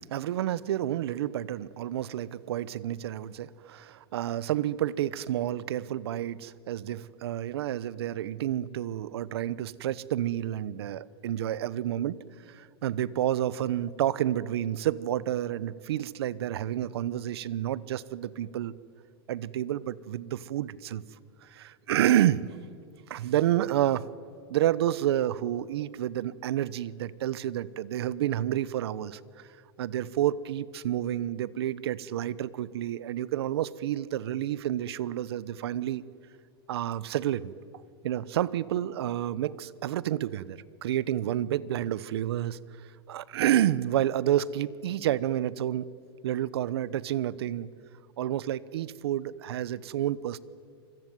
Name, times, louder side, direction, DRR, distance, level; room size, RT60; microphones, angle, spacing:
voice 1, 0.1-12.2 12.5-18.7 19.3-21.0 21.4-22.5 23.1-24.1 24.5-29.5 29.8-36.0 36.7-37.5 38.0-42.6 43.1-45.9 46.2-47.7 48.2-50.4, right 12 dB, 75° right, 19 dB, 1.0 m, -29 dB
25.5 x 22.0 x 9.4 m, 2.2 s
hypercardioid pair, 135°, 13 cm